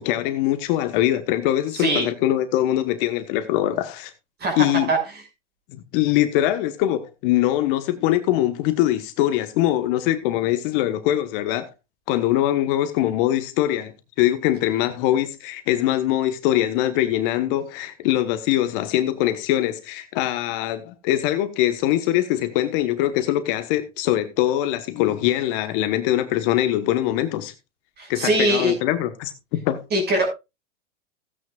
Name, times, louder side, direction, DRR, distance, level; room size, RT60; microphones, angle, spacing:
voice 1, 0.0-4.1 4.6-4.9 5.7-11.7 12.1-27.5 28.1-29.8, left 13 dB, 45° left, 1.3 m, -22 dB
voice 2, 1.7-2.1 4.4-5.0 28.0-28.7 29.9-30.3, right 1 dB, 25° right, 6.1 m, -21 dB
16.0 x 9.3 x 2.4 m
hypercardioid pair, 110°, 36 cm